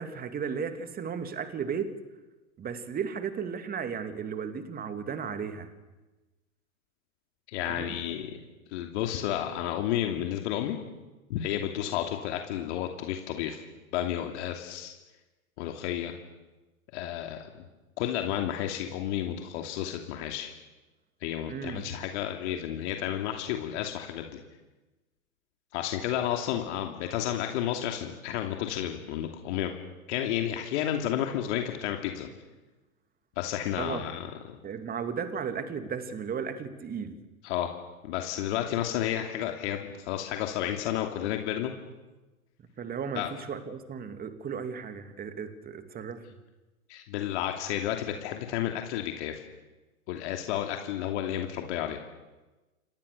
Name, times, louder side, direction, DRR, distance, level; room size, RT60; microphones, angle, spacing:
voice 1, 0.0-1.9 2.6-5.7 7.7-8.0 21.5-21.9 33.8-34.0 34.6-37.2 42.8-46.2, right 6 dB, 20° right, 8 dB, 2.6 m, -35 dB
voice 2, 7.5-8.3 8.7-10.8 11.3-13.6 13.9-14.9 15.6-16.1 16.9-17.5 18.0-20.5 21.2-24.4 25.7-29.7 30.1-32.3 33.4-34.6 37.4-37.7 38.0-41.7 43.1-43.3 46.9-49.4 50.1-52.0, left 11 dB, 50° left, 3 dB, 2.8 m, -31 dB
29.0 x 25.0 x 6.8 m, 1.1 s
hypercardioid pair, 110°, 43 cm